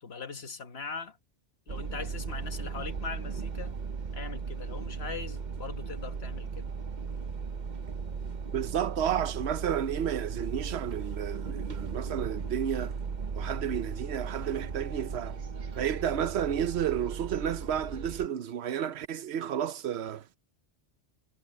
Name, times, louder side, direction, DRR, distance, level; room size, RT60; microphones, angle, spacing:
voice 1, 0.0-1.2 1.7-3.8 4.1-6.7, left 5 dB, 65° left, 1.6 m, -41 dB
sound 1, 1.7-18.3, right 5 dB, 45° right, 0.9 m, -37 dB
voice 2, 8.5-13.0 13.3-15.4 15.7-20.3, right 9 dB, 70° right, 1.0 m, -31 dB
omnidirectional pair, 1.2 m